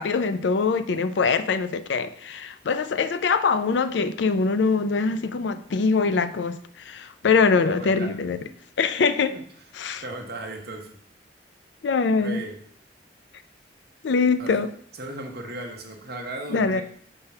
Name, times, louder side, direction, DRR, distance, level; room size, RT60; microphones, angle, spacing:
voice 1, 0.0-8.4 8.8-9.3 9.7-10.0 11.8-12.4 14.0-14.7 16.5-16.8, left 4 dB, 75° left, 0.4 m, -23 dB
voice 2, 7.7-8.1 9.3-9.4 10.0-10.9 12.2-12.6 14.4-14.6 15.0-16.8, right 1 dB, 60° right, 1.1 m, -36 dB
5.8 x 3.5 x 5.5 m
head